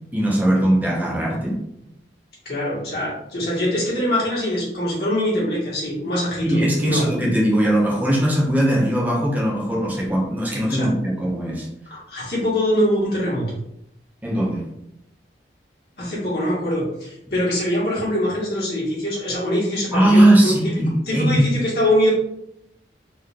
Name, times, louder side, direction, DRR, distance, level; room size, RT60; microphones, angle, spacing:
voice 1, 0.1-1.6 6.4-11.7 14.2-14.6 19.9-21.5, right 1 dB, 10° right, -3 dB, 0.7 m, -19 dB
voice 2, 2.4-7.1 10.7-10.9 11.9-13.6 16.0-20.8 21.1-22.1, left 1 dB, 60° left, -6 dB, 1.5 m, -23 dB
3.8 x 2.5 x 3.3 m, 0.78 s
head